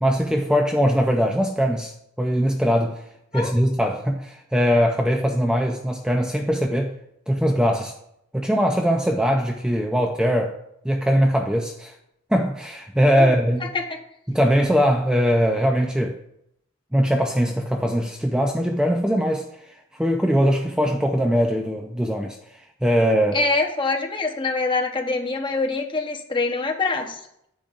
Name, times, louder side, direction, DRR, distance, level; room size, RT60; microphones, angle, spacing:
voice 1, 0.0-3.0 3.3-6.9 7.3-7.9 8.3-10.5 10.8-11.9 12.3-13.7 14.3-16.2 16.9-19.5 19.9-23.4, equal, 5° right, 2 dB, 0.5 m, -21 dB
voice 2, 23.3-27.2, left 3 dB, 25° left, 2 dB, 1.0 m, -24 dB
10.5 x 8.7 x 2.5 m, 0.77 s
head